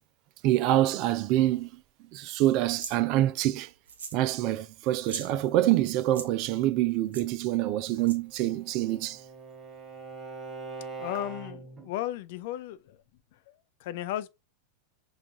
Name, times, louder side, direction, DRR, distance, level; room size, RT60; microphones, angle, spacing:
voice 1, 0.4-1.7 2.1-3.7 4.1-9.2, right 14 dB, 40° right, 0.4 m, -26 dB
sound 1, 2.7-3.0 3.9-4.3 4.5-4.6 4.9-5.3 6.0-6.3 7.1-7.3 8.0-8.4, right 5 dB, 65° right, 0.9 m, -39 dB
Bowed string instrument, 8.3-11.9, right 4 dB, 20° right, 0.7 m, -42 dB
voice 2, 11.0-13.0 13.3-14.3, left 13 dB, 50° left, 0.4 m, -35 dB
5.8 x 2.4 x 3.5 m
figure-of-eight pair, 90°, 0 cm